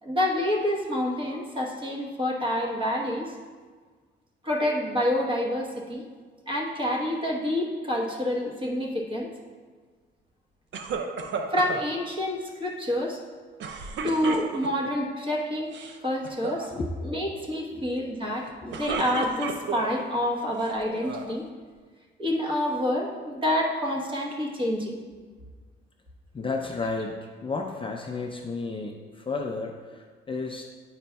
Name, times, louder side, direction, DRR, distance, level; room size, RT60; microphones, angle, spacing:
voice 1, 0.0-3.3 4.4-6.0 6.5-9.3 11.5-13.2 14.0-15.8 16.0-16.7 17.0-21.4 22.2-25.0, left 1 dB, 25° right, -1 dB, 1.1 m, -28 dB
sound 1, 10.7-11.9 13.6-14.9 15.6-16.0 16.2-16.7 18.5-20.0 20.6-21.3, right 5 dB, 70° right, 0.6 m, -33 dB
voice 2, 26.3-27.1 27.4-30.6, left 3 dB, 25° left, 2 dB, 0.5 m, -32 dB
8.8 x 5.0 x 2.3 m, 1.5 s
cardioid pair, 90°, 20 cm